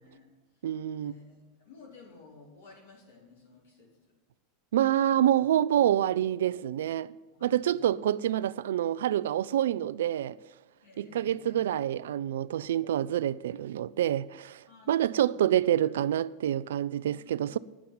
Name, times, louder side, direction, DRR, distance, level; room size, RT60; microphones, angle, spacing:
voice 1, 0.0-0.6 1.0-4.1 7.3-8.0 10.8-11.6 14.7-15.4 17.2-17.6, left 3 dB, 90° left, 4.4 m, -55 dB
voice 2, 0.6-1.1 4.7-7.1 7.4-10.4 11.0-17.6, right 11 dB, 85° right, 0.4 m, -27 dB
10.0 x 7.1 x 9.3 m
supercardioid pair, 115°, 0 cm